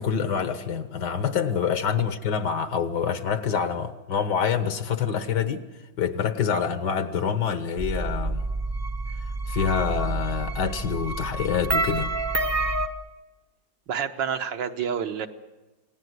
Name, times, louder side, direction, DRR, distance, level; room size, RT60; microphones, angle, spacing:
voice 1, 0.0-5.6 6.0-8.5 9.5-12.1, left 7 dB, 70° left, 1.9 m, -26 dB
sound 1, 7.8-12.9, right 2 dB, 15° right, 0.5 m, -28 dB
voice 2, 13.9-15.3, right 7 dB, 80° right, 1.8 m, -28 dB
28.5 x 17.5 x 8.0 m
omnidirectional pair, 2.0 m